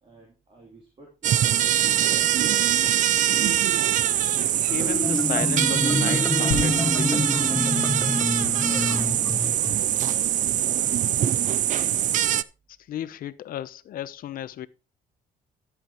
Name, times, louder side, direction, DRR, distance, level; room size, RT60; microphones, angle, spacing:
voice 1, 0.0-3.6 8.6-11.5, right 2 dB, 35° right, 3.3 m, -49 dB
sound 1, 1.2-12.4, right 11 dB, 50° right, 0.5 m, -23 dB
voice 2, 4.7-7.3 12.9-14.7, left 12 dB, 60° left, 0.8 m, -34 dB
Marimba xylophone, 4.7-9.8, left 2 dB, 10° left, 0.5 m, -27 dB
sound 2, 6.5-10.1 10.7-10.8, left 7 dB, 80° left, 1.5 m, -36 dB
13.5 x 8.0 x 3.1 m
cardioid pair, 110°, 17 cm